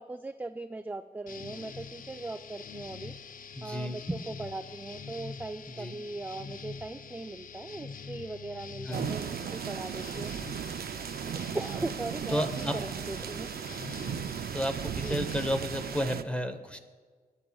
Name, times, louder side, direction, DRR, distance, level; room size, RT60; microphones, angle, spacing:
voice 1, 0.0-3.1 3.6-10.3 11.5-13.5 14.9-15.2, right 2 dB, 10° right, 8 dB, 0.3 m, -39 dB
sound 1, 1.3-16.1, left 5 dB, 60° left, 0.5 m, -45 dB
voice 2, 3.5-4.2 5.7-5.9 8.9-9.1 12.3-12.7 14.5-16.8, equal, 5° left, 6 dB, 0.9 m, -32 dB
sound 2, 8.9-16.2, right 8 dB, 85° right, 0.4 m, -36 dB
24.5 x 11.0 x 2.3 m, 1.5 s
wide cardioid pair, 145°, 16 cm